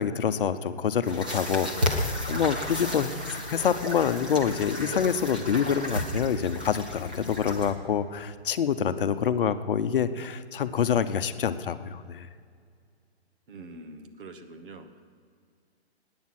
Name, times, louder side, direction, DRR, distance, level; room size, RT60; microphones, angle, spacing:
voice 1, 0.0-3.1 3.5-12.3, left 7 dB, 55° left, 11 dB, 0.9 m, -26 dB
sound 1, 1.0-7.7, left 1 dB, 10° right, 0.4 m, -32 dB
voice 2, 13.5-15.0, right 2 dB, 55° right, 8 dB, 1.5 m, -44 dB
19.0 x 9.6 x 6.1 m, 2.2 s
hypercardioid pair, 155°, 32 cm